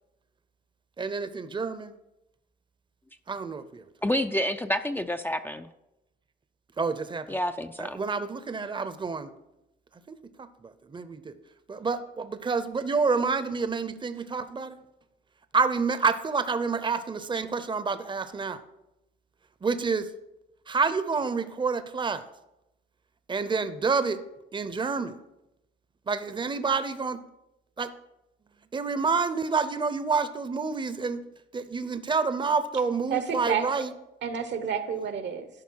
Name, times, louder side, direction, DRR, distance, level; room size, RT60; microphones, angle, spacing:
voice 1, 1.0-1.9 3.3-3.8 6.8-7.4 7.8-9.3 10.1-11.4 11.7-14.8 15.5-18.6 19.6-20.1 20.7-22.2 23.3-24.2 24.5-25.2 26.1-27.2 27.8-27.9 28.7-31.2 31.5-33.9, right 4 dB, 25° right, 12 dB, 0.7 m, -28 dB
voice 2, 4.0-5.7 7.3-8.0, left 1 dB, 10° left, 7 dB, 0.4 m, -28 dB
voice 3, 33.1-33.8 34.2-35.5, right 7 dB, 65° right, 10 dB, 1.0 m, -30 dB
12.5 x 5.4 x 4.7 m, 0.89 s
cardioid pair, 90°, 20 cm